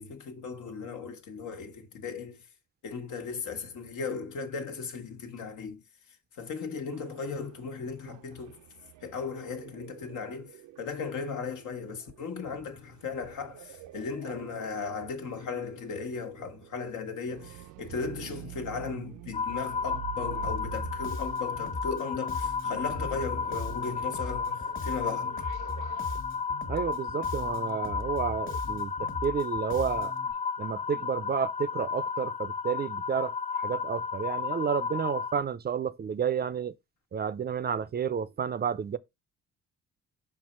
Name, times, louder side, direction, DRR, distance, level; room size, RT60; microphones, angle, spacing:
voice 1, 0.0-2.4 2.8-5.8 6.4-8.6 9.0-25.4, left 5 dB, 80° left, 1.4 m, -37 dB
sound 1, 6.9-26.2, right 15 dB, 85° right, 0.6 m, -47 dB
sound 2, 19.3-35.4, left 6 dB, 25° left, 0.5 m, -33 dB
Bass guitar, 20.4-30.3, left 2 dB, 40° left, 1.3 m, -40 dB
voice 2, 26.7-30.1 30.6-36.7 37.1-39.0, right 7 dB, 35° right, 0.4 m, -31 dB
5.5 x 4.4 x 4.3 m
cardioid pair, 90°, 30 cm